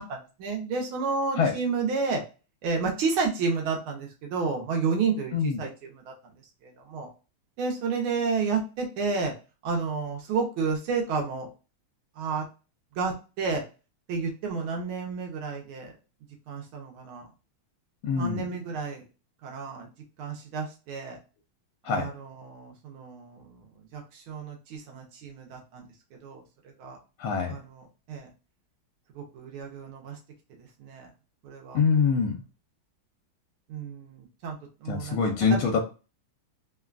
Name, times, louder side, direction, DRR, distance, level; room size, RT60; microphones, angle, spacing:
voice 1, 0.0-2.2 2.6-6.1 6.6-7.1 7.6-9.3 9.6-11.5 12.2-12.4 13.0-13.6 14.1-15.9 16.5-17.2 18.2-19.0 19.4-19.9 20.2-21.2 21.9-23.6 23.9-25.8 26.2-26.4 26.8-27.0 27.5-28.3 29.1-30.2 30.8-31.1 31.4-31.8 33.7-34.6 34.8-35.7, right 4 dB, 80° right, 1 dB, 1.6 m, -31 dB
voice 2, 18.0-18.4 21.8-22.1 27.2-27.5 31.7-32.4 34.9-35.8, left 5 dB, 80° left, 3 dB, 1.4 m, -24 dB
3.7 x 2.2 x 2.3 m, 0.32 s
omnidirectional pair, 2.3 m